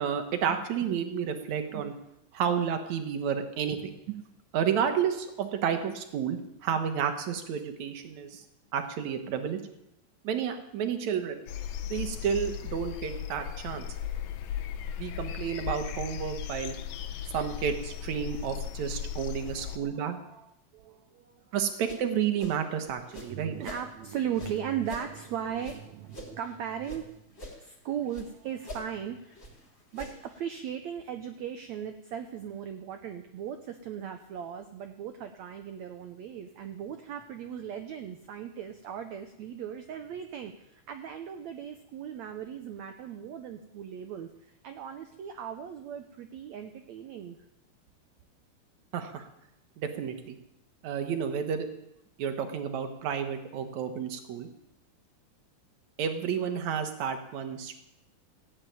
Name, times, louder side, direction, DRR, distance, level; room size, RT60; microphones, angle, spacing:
voice 1, 0.0-1.9 2.3-4.2 4.5-8.4 8.7-9.6 10.2-11.4 11.9-13.9 15.0-16.8 17.3-20.2 21.5-23.5 48.9-49.3 49.8-50.4 50.8-51.7 52.2-54.5 56.0-57.8, right 8 dB, 60° right, 7 dB, 2.3 m, -31 dB
sound 1, 11.5-19.8, left 10 dB, 75° left, 2.5 m, -37 dB
voice 2, 19.5-21.5 23.3-27.2 27.6-29.3 29.9-47.4, right 9 dB, 85° right, 7 dB, 1.6 m, -38 dB
sound 2, 21.6-23.9 24.3-27.0 27.3-28.3 28.6-30.4, left 1 dB, 15° left, 3.1 m, -46 dB
15.5 x 8.9 x 9.3 m, 0.82 s
omnidirectional pair, 4.4 m